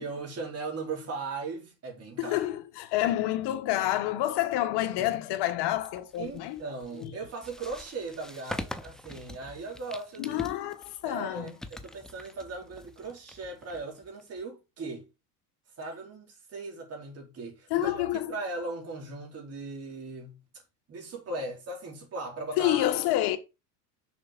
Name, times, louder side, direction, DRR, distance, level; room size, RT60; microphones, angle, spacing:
voice 1, 0.0-2.4 6.2-10.5 11.0-15.0 15.8-20.4 20.9-22.9, right 3 dB, 30° right, 4.2 m, -38 dB
voice 2, 2.2-6.6 7.0-7.1 10.2-11.5 17.7-18.3 22.6-23.4, left 14 dB, 60° left, 1.5 m, -28 dB
sound 1, 5.7-14.4, left 1 dB, ahead, 0.3 m, -44 dB
6.8 x 5.6 x 5.2 m
supercardioid pair, 135°, 46 cm